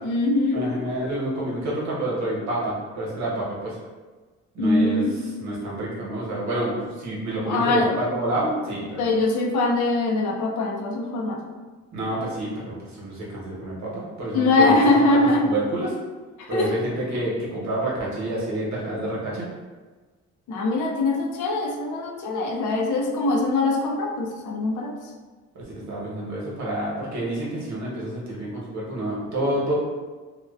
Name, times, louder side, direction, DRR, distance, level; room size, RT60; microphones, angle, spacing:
voice 1, 0.0-0.6 4.6-5.1 7.4-7.9 9.0-11.4 14.3-15.5 16.4-16.7 20.5-24.9, left 2 dB, 80° left, 1 dB, 0.5 m, -22 dB
voice 2, 0.5-3.8 4.5-5.0 5.4-9.0 11.9-14.7 15.1-15.9 16.5-19.5 25.5-29.7, right 1 dB, 65° right, -5 dB, 1.0 m, -28 dB
2.4 x 2.1 x 2.3 m, 1.4 s
cardioid pair, 90°, 30 cm